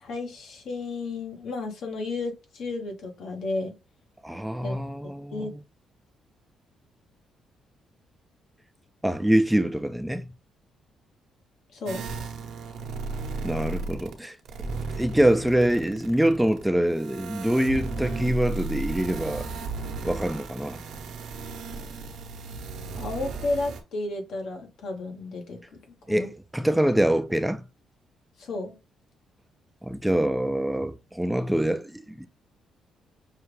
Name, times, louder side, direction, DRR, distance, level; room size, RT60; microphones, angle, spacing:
voice 1, 0.0-3.7 4.6-4.8 5.0-5.5 11.7-12.1 23.0-25.8 26.1-26.3 28.4-28.8, left 2 dB, 70° left, 1.1 m, -33 dB
voice 2, 4.2-5.5 9.0-10.3 13.4-14.4 15.0-19.5 20.0-20.8 26.1-27.6 29.8-32.3, right 1 dB, 5° right, 0.4 m, -25 dB
sound 1, 11.9-14.2 14.4-23.8, right 4 dB, 75° right, 0.9 m, -35 dB
5.6 x 2.4 x 3.2 m
cardioid pair, 90°, 0 cm